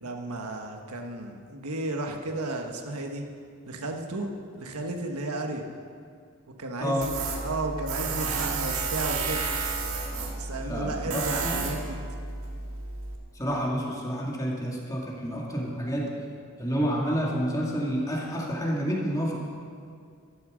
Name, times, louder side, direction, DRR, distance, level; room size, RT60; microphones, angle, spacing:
voice 1, 0.0-3.2 3.7-4.3 4.5-5.6 6.6-7.2 7.4-9.4 10.3-11.9, right 2 dB, 90° right, 3 dB, 1.4 m, -33 dB
Tools, 7.0-13.2, right 4 dB, 70° right, 1.8 m, -32 dB
voice 2, 10.7-11.7 13.3-16.1 16.6-19.4, equal, 15° left, -3 dB, 2.1 m, -29 dB
13.0 x 12.0 x 6.3 m, 2.2 s
head